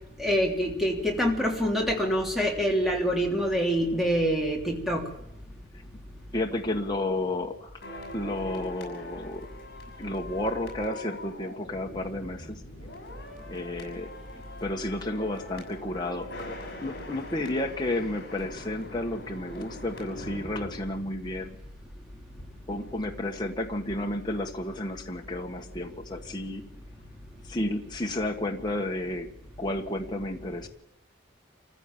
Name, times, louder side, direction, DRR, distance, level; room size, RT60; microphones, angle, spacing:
voice 1, 0.2-5.0, equal, ahead, -1 dB, 3.1 m, -25 dB
voice 2, 6.3-9.5 10.0-12.6 13.5-14.1 14.6-21.6 22.7-26.6 27.5-29.3 29.6-30.7, left 1 dB, 20° left, 1 dB, 1.6 m, -32 dB
sound 1, 7.8-22.0 22.2-22.4, left 1 dB, 55° left, 6.4 m, -43 dB
27.0 x 15.0 x 7.4 m, 0.85 s
head